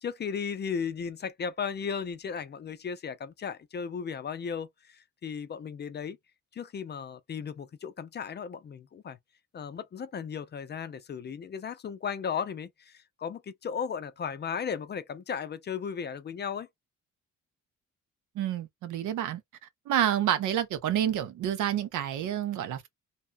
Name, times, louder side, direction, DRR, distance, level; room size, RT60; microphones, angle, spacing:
voice 1, 0.0-6.2 6.5-9.2 9.5-16.7, left 6 dB, 35° left, 0.5 m, -35 dB
voice 2, 18.3-19.4 19.9-22.9, right 10 dB, 80° right, 0.7 m, -28 dB
2.8 x 2.2 x 2.5 m
cardioid pair, 90°, 30 cm